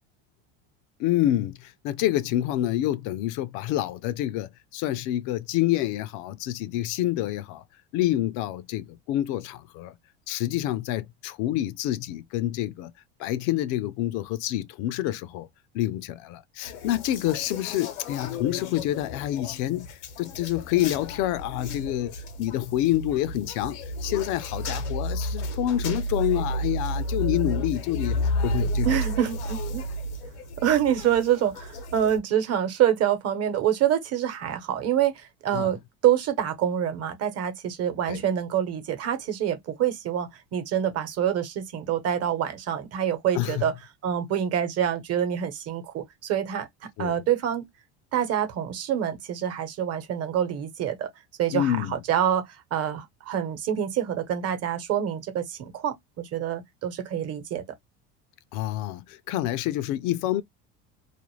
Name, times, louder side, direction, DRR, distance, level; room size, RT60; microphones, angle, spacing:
voice 1, 1.0-7.6 7.9-9.9 10.3-12.9 13.2-15.5 15.7-28.9 35.5-35.7 38.1-38.2 43.3-43.7 47.0-47.2 51.5-52.0 58.5-60.4, left 13 dB, 60° left, 0.5 m, -27 dB
sound 1, 16.6-32.2, equal, 85° left, 0.9 m, -32 dB
voice 2, 28.8-29.8 30.6-43.7 44.0-46.7 47.0-47.6 48.1-51.1 51.4-57.6, right 10 dB, 45° right, 1.0 m, -26 dB
2.5 x 2.1 x 3.1 m
supercardioid pair, 100°, 33 cm